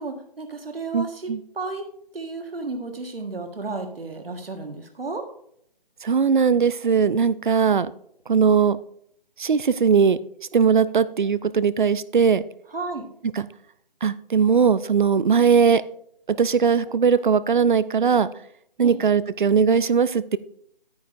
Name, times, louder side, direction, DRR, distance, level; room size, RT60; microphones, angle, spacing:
voice 1, 0.0-1.8 2.1-5.2 12.7-13.0 18.8-19.0, right 3 dB, 80° right, 5 dB, 1.6 m, -33 dB
voice 2, 0.9-1.4 6.0-7.9 8.3-8.8 9.4-10.2 10.5-12.4 13.4-13.5 14.0-15.8 16.3-18.3 18.8-20.4, right 6 dB, 55° right, 16 dB, 0.5 m, -19 dB
9.7 x 9.4 x 2.6 m, 0.69 s
figure-of-eight pair, 160°, 29 cm